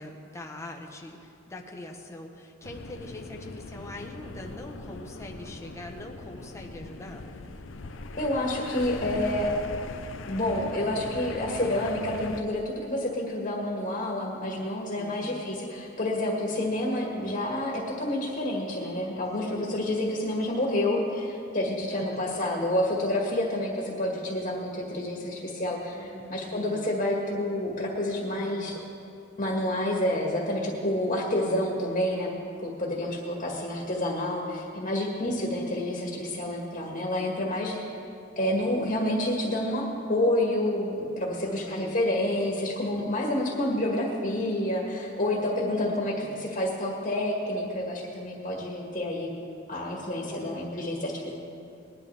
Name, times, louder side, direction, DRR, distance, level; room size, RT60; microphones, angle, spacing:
voice 1, 0.0-7.2 14.9-15.4 19.4-19.6 21.9-22.2 25.9-27.0 28.4-28.8 33.0-33.6 41.4-42.0 45.4-45.9 46.2-46.4 50.3-50.8, left 1 dB, 15° left, 1 dB, 1.0 m, -43 dB
sound 1, 2.6-12.4, left 3 dB, 65° left, 0.7 m, -41 dB
voice 2, 8.2-9.5 10.3-28.8 29.4-37.9 38.4-46.1 46.4-49.3 49.7-51.3, left 1 dB, 40° left, -2 dB, 1.8 m, -29 dB
20.5 x 11.5 x 3.4 m, 2.6 s
head